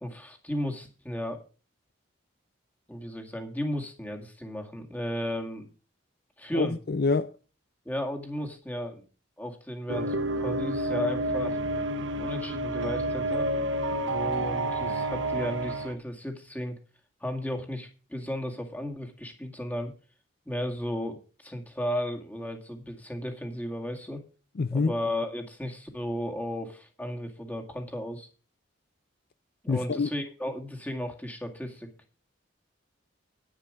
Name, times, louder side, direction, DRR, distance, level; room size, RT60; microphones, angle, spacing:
voice 1, 0.0-1.4 2.9-5.7 6.4-6.7 7.9-9.0 9.4-11.6 12.2-13.5 14.0-16.8 17.2-19.9 20.5-24.2 24.7-28.3 29.6-31.9, left 1 dB, 10° left, 2.0 m, -34 dB
voice 2, 6.5-7.3 24.6-24.9 29.7-30.1, left 4 dB, 50° left, 0.5 m, -26 dB
sound 1, 9.9-15.9, right 1 dB, 70° right, 1.2 m, -29 dB
10.0 x 9.9 x 5.0 m
head